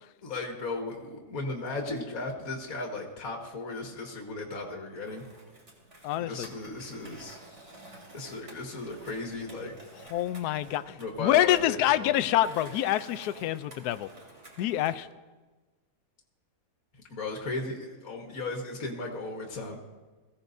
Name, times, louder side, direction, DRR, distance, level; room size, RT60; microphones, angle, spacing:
voice 1, 0.2-5.2 6.2-7.4 8.1-9.8 11.0-12.3 17.1-19.8, left 3 dB, 55° left, 0 dB, 2.0 m, -36 dB
Skateboard, 5.0-15.0, right 2 dB, 40° right, 3.2 m, -51 dB
voice 2, 6.0-6.5 10.1-14.1 14.6-15.1, left 13 dB, 75° left, 13 dB, 1.1 m, -26 dB
22.5 x 16.0 x 2.7 m, 1.3 s
omnidirectional pair, 1.8 m